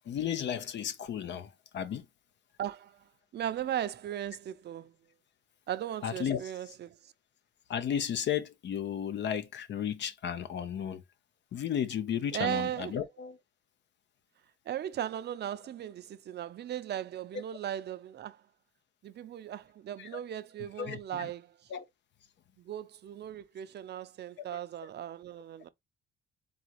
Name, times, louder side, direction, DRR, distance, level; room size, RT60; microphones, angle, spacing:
voice 1, 0.1-2.0 6.0-6.4 7.7-11.0 11.5-13.4 20.0-20.2 20.8-21.3 21.7-21.8, left 9 dB, 65° left, 0.8 m, -34 dB
voice 2, 2.6-3.0 3.3-4.9 5.7-7.1 12.3-13.0 14.7-18.4 19.0-21.5 22.6-25.7, right 11 dB, 60° right, 0.6 m, -37 dB
4.0 x 3.8 x 3.0 m
cardioid pair, 90°, 20 cm